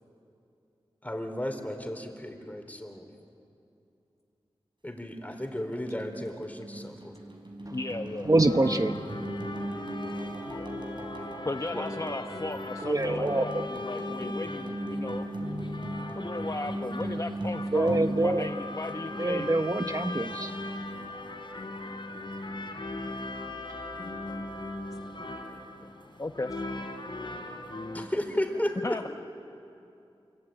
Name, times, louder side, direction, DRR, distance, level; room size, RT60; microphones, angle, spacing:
voice 1, 1.0-3.1 4.8-7.2 9.1-9.3 11.7-11.8 27.9-29.0, left 1 dB, 15° left, 5 dB, 3.6 m, -33 dB
voice 2, 1.8-2.3 7.7-8.5 10.5-10.9 11.4-15.3 16.1-19.5 26.2-26.6 28.8-29.1, left 2 dB, 35° left, 5 dB, 0.9 m, -36 dB
sound 1, 5.3-19.5, right 1 dB, 55° right, 4.9 m, -38 dB
voice 3, 8.2-9.0 12.8-13.7 17.7-18.5 19.2-20.5, right 2 dB, 35° right, 7 dB, 1.0 m, -25 dB
sound 2, 8.3-28.1, left 2 dB, 55° left, 3.4 m, -38 dB
28.0 x 23.0 x 9.1 m, 2.7 s
wide cardioid pair, 60°, 10 cm